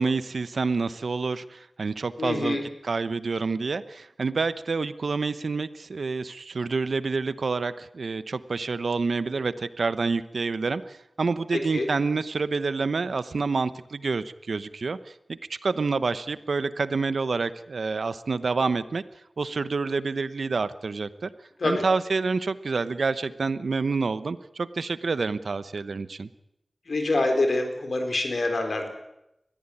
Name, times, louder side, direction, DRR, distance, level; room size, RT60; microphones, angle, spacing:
voice 1, 0.0-2.6 2.8-19.0 19.4-21.3 21.6-26.3, right 4 dB, 85° right, 14 dB, 0.9 m, -28 dB
voice 2, 2.2-2.6 11.7-11.9 21.6-21.8 26.9-28.9, left 2 dB, 75° left, 5 dB, 4.1 m, -25 dB
21.0 x 14.0 x 10.0 m, 0.88 s
cardioid pair, 45°, 0 cm